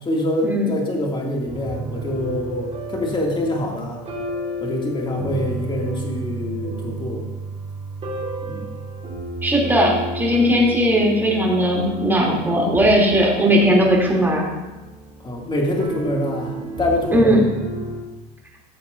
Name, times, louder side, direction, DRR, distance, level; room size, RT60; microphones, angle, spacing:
voice 1, 0.0-4.0 4.6-7.2 8.4-8.7 15.2-17.4, left 1 dB, 25° left, -1 dB, 2.4 m, -25 dB
sound 1, 1.5-18.0, right 2 dB, 30° right, 2.4 m, -32 dB
voice 2, 9.4-14.4 17.1-17.4, equal, 10° right, -3 dB, 3.0 m, -18 dB
14.5 x 7.0 x 2.6 m, 1.1 s
supercardioid pair, 95°, 21 cm